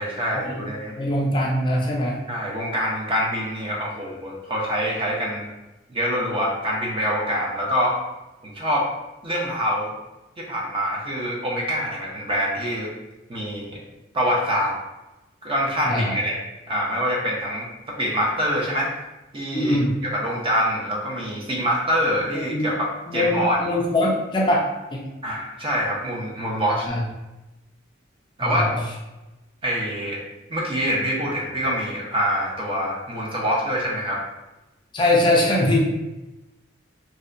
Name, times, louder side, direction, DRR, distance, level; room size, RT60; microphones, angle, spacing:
voice 1, 0.0-0.9 2.3-5.5 5.9-8.0 8.4-8.9 9.2-9.9 10.4-12.9 13.3-13.8 14.1-14.7 15.4-16.3 16.7-18.9 19.3-23.7 25.2-26.9 28.4-28.7 29.6-30.2 30.5-34.2, equal, 30° right, -3 dB, 0.6 m, -25 dB
voice 2, 1.0-2.2 15.9-16.2 19.5-19.9 22.5-22.6 23.1-24.7 24.9-25.0 26.9-27.0 28.4-28.8 34.9-35.8, left 1 dB, 25° left, -2 dB, 0.3 m, -22 dB
2.7 x 2.1 x 2.4 m, 1.0 s
head